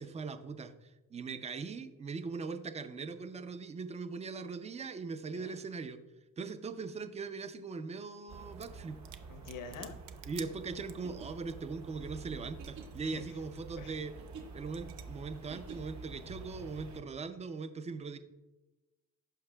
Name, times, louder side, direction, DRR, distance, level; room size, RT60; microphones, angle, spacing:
voice 1, 0.0-6.0 6.4-9.0 10.3-14.1 14.5-18.2, right 4 dB, 20° right, 10 dB, 0.4 m, -40 dB
voice 2, 5.3-5.6 9.3-10.0 13.0-13.4 13.7-14.0, left 4 dB, 65° left, 8 dB, 0.8 m, -46 dB
sound 1, 8.3-17.0, right 4 dB, 50° right, 1.0 m, -49 dB
sound 2, 8.5-8.8 9.1-11.2 11.5-11.6 11.8-13.0 13.3-13.6 14.2-14.4 14.7-15.0, right 11 dB, 75° right, 0.6 m, -51 dB
sound 3, 11.0-16.1, right 7 dB, 90° right, 1.6 m, -52 dB
15.5 x 5.6 x 2.2 m, 1.1 s
cardioid pair, 155°, 35 cm